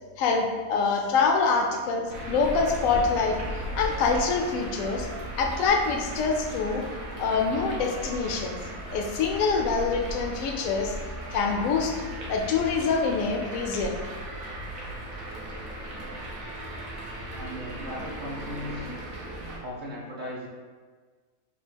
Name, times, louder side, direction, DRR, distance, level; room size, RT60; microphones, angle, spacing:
voice 1, 0.2-3.4 3.7-5.1 5.4-6.8 7.2-8.6 8.9-10.9 11.3-11.9 12.3-14.0, left 4 dB, 80° left, 2 dB, 1.0 m, -25 dB
sound 1, 2.1-19.6, right 1 dB, 80° right, 1.2 m, -36 dB
voice 2, 17.3-18.9 19.6-20.5, left 1 dB, 55° right, -6 dB, 0.6 m, -37 dB
3.4 x 2.4 x 4.5 m, 1.5 s
omnidirectional pair, 1.4 m